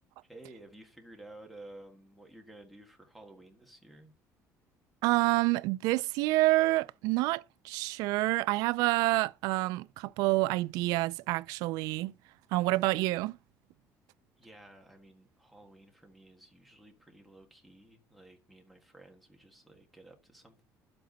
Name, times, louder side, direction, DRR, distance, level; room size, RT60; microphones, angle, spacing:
voice 1, 0.2-4.1 14.4-20.6, right 1 dB, ahead, 1.7 m, -53 dB
voice 2, 5.0-12.1 12.5-13.4, right 20 dB, 85° right, 0.4 m, -28 dB
11.5 x 7.9 x 4.1 m
cardioid pair, 180°, 6 cm